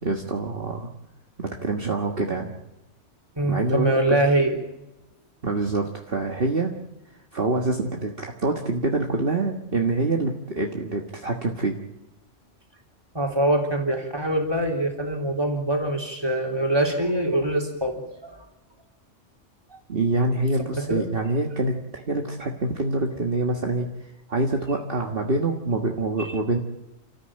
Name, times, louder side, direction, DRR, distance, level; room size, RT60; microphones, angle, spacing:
voice 1, 0.0-0.9 1.4-2.6 3.5-4.2 5.4-6.7 7.3-11.8 19.9-26.6, right 2 dB, 50° right, 2 dB, 1.8 m, -26 dB
voice 2, 3.4-4.6 13.1-18.4 19.7-19.8 20.8-21.1 26.2-26.3, right 1 dB, 20° right, 2 dB, 3.7 m, -24 dB
29.5 x 14.5 x 8.9 m, 0.93 s
omnidirectional pair, 1.2 m